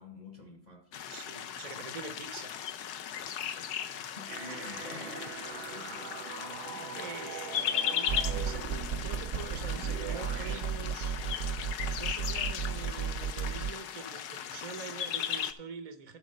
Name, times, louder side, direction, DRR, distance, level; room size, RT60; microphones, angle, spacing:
voice 1, 0.0-1.3 1.7-1.8 3.0-7.1, left 2 dB, 35° left, 0.8 m, -50 dB
sound 1, 0.9-15.5, left 9 dB, 80° left, 1.2 m, -37 dB
voice 2, 1.1-2.5 6.9-11.1 11.9-16.2, right 5 dB, 45° right, 0.4 m, -45 dB
sound 2, 4.3-10.6, right 8 dB, 80° right, 1.2 m, -43 dB
sound 3, 8.1-13.7, right 7 dB, 65° right, 0.9 m, -34 dB
12.0 x 4.3 x 6.5 m
omnidirectional pair, 1.7 m